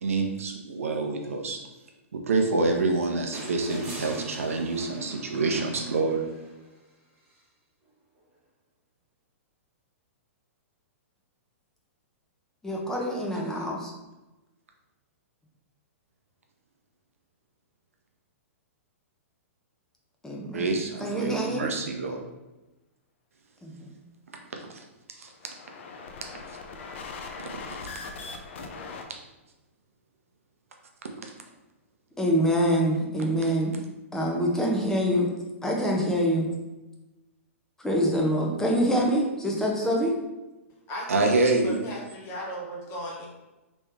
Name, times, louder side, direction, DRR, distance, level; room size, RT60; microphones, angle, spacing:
voice 1, 0.0-1.6 2.1-6.2 20.5-22.2 24.7-24.8 25.2-25.3 41.1-41.9, right 3 dB, 75° right, 2 dB, 0.6 m, -26 dB
sound 1, 3.3-6.7 8.2-8.3, right 2 dB, 25° right, 1.2 m, -41 dB
voice 2, 12.6-13.9 20.2-20.7 21.0-21.7 23.6-23.7 32.2-33.7 34.1-35.3 35.6-36.5 37.8-40.1, equal, 5° left, -1 dB, 0.7 m, -25 dB
sound 2, 25.3-29.0, left 4 dB, 55° left, 0.5 m, -40 dB
voice 3, 40.9-43.3, equal, 35° left, -3 dB, 1.2 m, -37 dB
3.2 x 3.1 x 3.5 m, 1.1 s
hypercardioid pair, 115°, 7 cm